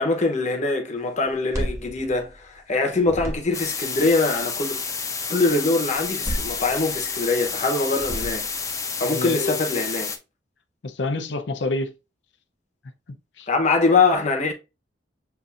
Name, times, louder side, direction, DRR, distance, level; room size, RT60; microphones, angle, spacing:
voice 1, 0.0-4.8 5.3-8.5 9.0-10.1 13.5-14.5, left 3 dB, 40° left, 0.9 m, -23 dB
sound 1, 1.3-2.7 3.0-3.8 6.0-7.2 7.9-8.7, equal, 15° right, 1.1 m, -32 dB
sound 2, 3.5-10.2, left 5 dB, 20° left, 0.6 m, -30 dB
voice 2, 9.0-9.6 10.8-11.9 13.1-13.5, left 3 dB, 75° left, 0.6 m, -28 dB
6.9 x 2.6 x 2.5 m
head